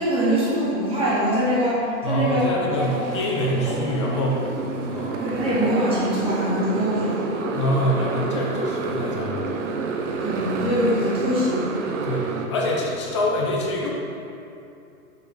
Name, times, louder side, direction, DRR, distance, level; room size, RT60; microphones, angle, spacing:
voice 1, 0.0-2.9 3.7-3.8 5.2-7.3 10.2-11.7, equal, 10° right, -9 dB, 1.7 m, -23 dB
voice 2, 2.0-4.5 4.9-5.3 7.5-9.7 10.5-10.6 12.0-13.9, left 1 dB, 20° left, -2 dB, 0.5 m, -25 dB
Motorcycle, 2.7-12.5, right 4 dB, 55° right, 0.8 m, -29 dB
6.5 x 5.0 x 5.0 m, 2.6 s
hypercardioid pair, 155°, 45 cm